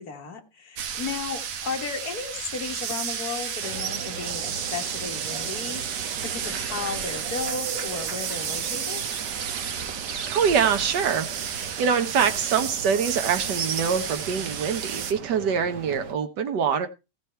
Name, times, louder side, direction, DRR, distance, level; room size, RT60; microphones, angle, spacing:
voice 1, 0.0-9.1, left 5 dB, 40° left, 3 dB, 1.5 m, -34 dB
sound 1, 0.8-15.1, right 8 dB, 75° right, 2.6 m, -32 dB
sound 2, 3.6-16.1, right 7 dB, 60° right, 1.1 m, -38 dB
voice 2, 10.3-16.9, right 7 dB, 90° right, 7 dB, 0.9 m, -24 dB
15.0 x 6.8 x 4.4 m, 0.27 s
omnidirectional pair, 3.4 m